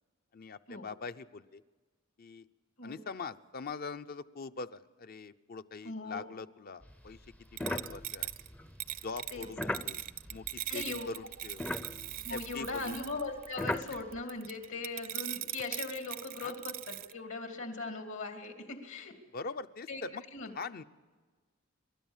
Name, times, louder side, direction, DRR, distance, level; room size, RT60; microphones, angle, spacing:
voice 1, 0.3-1.6 2.2-2.5 2.8-7.2 7.5-8.3 9.0-10.0 10.3-11.7 12.3-13.0 16.4-16.6 19.3-20.2 20.5-20.8, left 4 dB, 50° left, 11 dB, 0.6 m, -43 dB
voice 2, 5.8-6.3 9.3-9.5 10.7-11.1 12.2-19.1 19.9-20.0 20.3-20.5, left 3 dB, 70° left, 5 dB, 2.7 m, -39 dB
sound 1, 6.8-11.1 11.3-14.2, left 2 dB, 5° left, 0.5 m, -40 dB
sound 2, 7.6-17.1, right 14 dB, 45° right, 0.5 m, -40 dB
29.0 x 13.0 x 7.3 m, 1.4 s
head